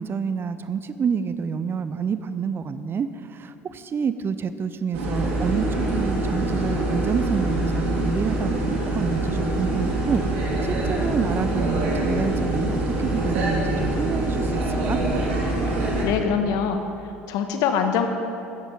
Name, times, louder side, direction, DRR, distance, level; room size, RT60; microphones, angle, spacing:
voice 1, 0.0-15.0, right 6 dB, 35° right, 12 dB, 0.7 m, -28 dB
sound 1, 4.9-16.0, right 2 dB, 70° right, 3.3 m, -24 dB
voice 2, 16.0-16.8 17.3-18.1, left 7 dB, 60° left, 6 dB, 1.4 m, -23 dB
16.0 x 13.5 x 4.0 m, 2.7 s
hypercardioid pair, 65°, 7 cm